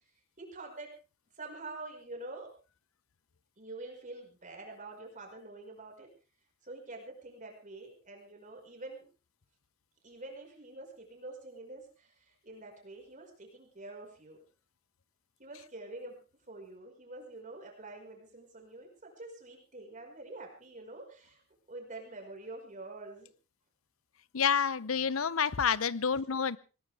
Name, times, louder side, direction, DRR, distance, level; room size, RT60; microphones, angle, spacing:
voice 1, 0.4-0.9 1.3-2.5 3.6-6.1 6.6-9.1 10.0-14.4 15.4-16.2 16.5-21.4 21.7-23.3, right 2 dB, 35° right, 2 dB, 5.2 m, -46 dB
voice 2, 24.3-26.6, left 7 dB, 75° left, 19 dB, 0.7 m, -28 dB
19.5 x 19.5 x 3.5 m, 0.33 s
head